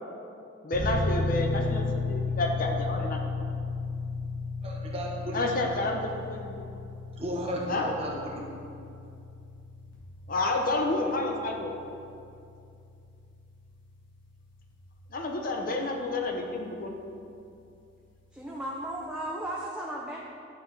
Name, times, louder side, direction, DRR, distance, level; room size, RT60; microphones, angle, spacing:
voice 1, 0.6-3.2 5.3-6.6 7.7-7.9 10.3-11.7 15.1-17.0, left 2 dB, 40° left, 2 dB, 0.6 m, -29 dB
sound 1, 0.7-15.1, left 3 dB, 60° left, 1.4 m, -34 dB
voice 2, 4.6-5.4 7.2-8.5, right 1 dB, 30° right, -3 dB, 0.9 m, -34 dB
voice 3, 18.3-20.2, right 1 dB, 5° right, -4 dB, 0.5 m, -35 dB
11.0 x 4.5 x 3.2 m, 2.6 s
head